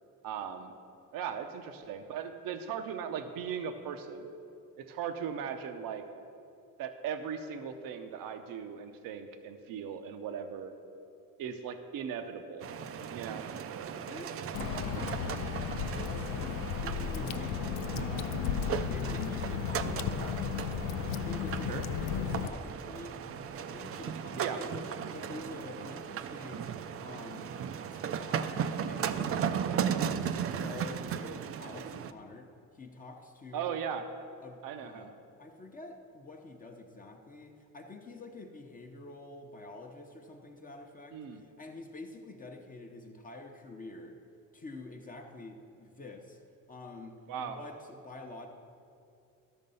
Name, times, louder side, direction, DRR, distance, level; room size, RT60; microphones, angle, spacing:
voice 1, 0.2-0.7 1.1-4.3 4.8-6.0 6.8-10.7 11.4-12.7 13.1-13.5 21.6-21.8 24.4-24.6 33.5-34.1 34.6-35.1 41.1-41.4 47.3-47.6, right 7 dB, 75° right, 7 dB, 0.8 m, -38 dB
sound 1, 12.6-32.1, right 8 dB, 45° right, 0.4 m, -36 dB
voice 2, 13.9-15.4 16.0-17.7 18.0-18.4 18.7-23.2 23.6-26.7 27.0-27.5 28.2-33.8 34.4-35.1 35.4-44.2 44.5-46.4 46.7-48.5, left 2 dB, 25° left, 2 dB, 0.7 m, -47 dB
Water / Drip, 14.5-22.5, left 8 dB, 75° left, 0.5 m, -34 dB
12.5 x 6.5 x 5.4 m, 2.6 s
cardioid pair, 135°, 34 cm